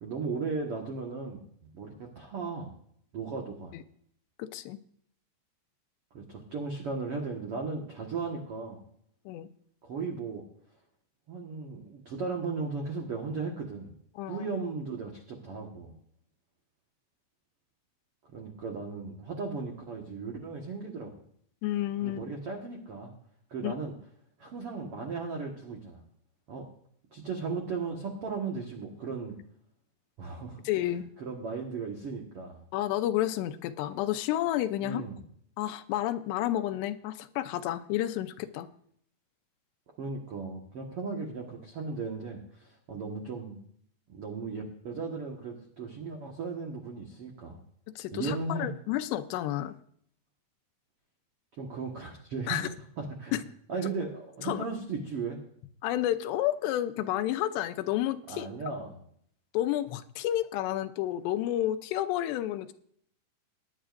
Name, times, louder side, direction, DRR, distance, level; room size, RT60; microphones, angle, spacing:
voice 1, 0.0-2.7 3.1-3.7 6.1-8.8 9.8-10.4 11.3-13.9 14.3-15.9 18.3-21.1 22.0-23.1 23.5-23.9 24.4-26.0 26.5-26.7 27.1-29.3 30.2-30.6 31.2-32.6 34.8-35.2 40.0-43.6 44.1-47.6 48.1-48.7 51.6-52.7 53.0-53.4 53.7-55.4 58.3-59.0, right 4 dB, 70° right, 0 dB, 1.4 m, -36 dB
voice 2, 4.4-4.8 9.3-9.5 14.2-14.5 21.6-22.3 23.6-23.7 30.6-31.1 32.7-35.0 35.6-38.7 48.0-49.8 52.5-52.7 53.3-53.4 54.4-54.7 55.8-58.5 59.5-62.7, left 13 dB, 80° left, 11 dB, 2.8 m, -30 dB
20.5 x 10.0 x 2.6 m, 0.65 s
omnidirectional pair, 5.0 m